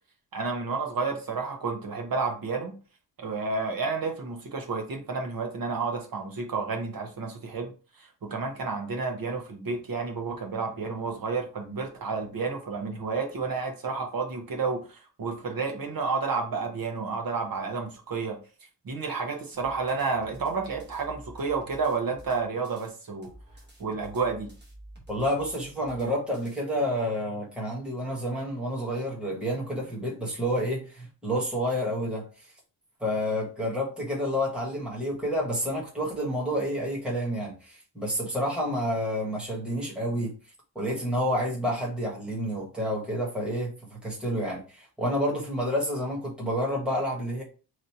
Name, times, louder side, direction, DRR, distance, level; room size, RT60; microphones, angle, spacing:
voice 1, 0.3-2.7 3.2-18.4 18.8-23.3 23.8-24.5, right 4 dB, 50° right, 1.0 m, -31 dB
sound 1, 19.5-22.9 23.2-26.6, right 1 dB, 25° right, 0.9 m, -50 dB
voice 2, 25.1-32.5 33.0-40.3 40.7-47.4, equal, ahead, 1.3 m, -29 dB
3.2 x 2.7 x 4.2 m
wide cardioid pair, 175°, 44 cm